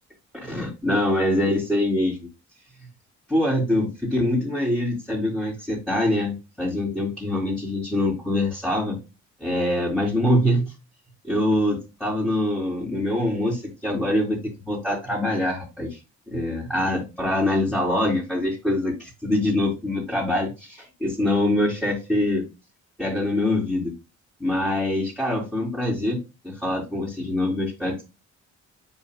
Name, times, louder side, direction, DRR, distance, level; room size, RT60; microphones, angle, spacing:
voice 1, 0.4-2.2 3.3-9.0 9.4-10.6 11.2-14.4 14.6-16.0 16.3-22.4 23.0-23.9 24.4-28.0, left 1 dB, 5° left, -5 dB, 3.3 m, -24 dB
10.5 x 4.0 x 2.2 m, 0.26 s
cardioid pair, 90°, 30 cm